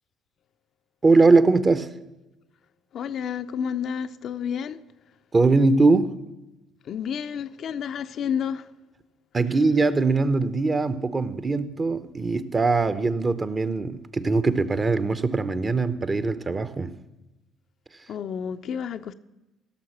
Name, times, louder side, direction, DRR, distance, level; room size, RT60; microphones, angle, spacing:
voice 1, 1.0-1.9 5.3-6.1 9.3-16.9, right 3 dB, 30° right, 0.8 m, -21 dB
voice 2, 2.9-4.8 6.8-8.7 18.1-19.1, left 7 dB, 55° left, 0.5 m, -30 dB
16.0 x 6.4 x 6.0 m
hypercardioid pair, 55°, 0 cm